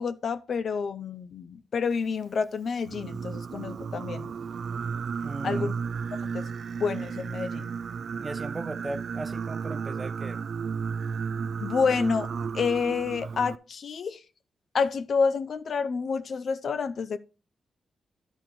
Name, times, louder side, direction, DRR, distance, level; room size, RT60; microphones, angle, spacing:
voice 1, 0.0-4.3 5.4-5.7 6.2-6.5 6.8-7.7 11.6-14.2 14.7-17.2, left 5 dB, 65° left, 0.6 m, -29 dB
Singing, 2.8-13.6, right 6 dB, 65° right, 0.3 m, -33 dB
voice 2, 5.2-5.7 8.2-10.4, right 2 dB, 30° right, 0.7 m, -37 dB
11.0 x 4.4 x 4.6 m
cardioid pair, 75°, 0 cm